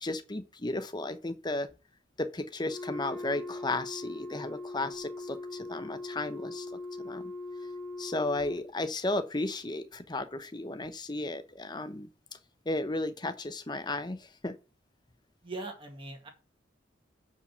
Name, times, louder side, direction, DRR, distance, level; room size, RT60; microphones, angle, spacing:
voice 1, 0.0-1.7 2.2-7.3 8.0-12.1 12.7-14.6, left 2 dB, 25° left, 0.8 m, -34 dB
Wind instrument woodwind instrument, 2.6-8.7, left 2 dB, 10° left, 1.5 m, -40 dB
voice 2, 15.4-16.3, right 2 dB, 30° right, 2.0 m, -40 dB
7.6 x 5.1 x 6.8 m
head